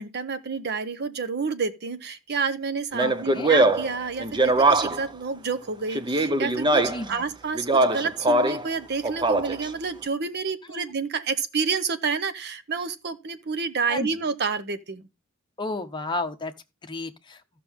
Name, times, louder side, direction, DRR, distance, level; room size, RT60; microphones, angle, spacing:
voice 1, 0.0-6.8 7.1-15.1, right 5 dB, 55° right, 0.9 m, -29 dB
Speech, 2.9-5.1 5.9-7.1 7.5-8.7 9.0-9.7, right 2 dB, 20° right, 0.7 m, -22 dB
voice 2, 3.0-3.5 6.8-7.3 10.7-10.9 13.9-14.1 15.6-16.5 16.8-17.4, left 2 dB, 20° left, 0.9 m, -32 dB
14.5 x 6.0 x 3.5 m
head